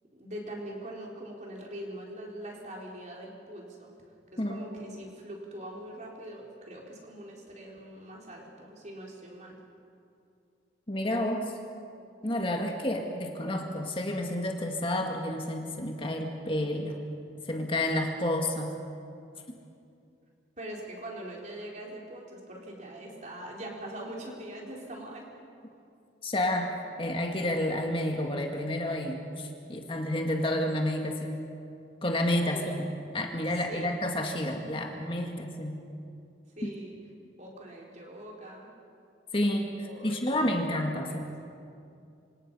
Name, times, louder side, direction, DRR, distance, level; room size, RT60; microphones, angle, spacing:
voice 1, 0.1-3.9 4.3-9.6 20.6-25.3 32.5-32.9 33.5-33.9 36.6-36.9 37.4-38.7 39.8-40.4 41.0-41.2, right 1 dB, 40° right, -2 dB, 4.3 m, -42 dB
voice 2, 10.9-11.5 12.2-17.0 17.5-18.7 26.2-31.4 32.0-35.8 36.6-36.7 39.3-41.3, left 1 dB, 30° left, 2 dB, 1.9 m, -30 dB
27.0 x 26.5 x 5.6 m, 2.5 s
head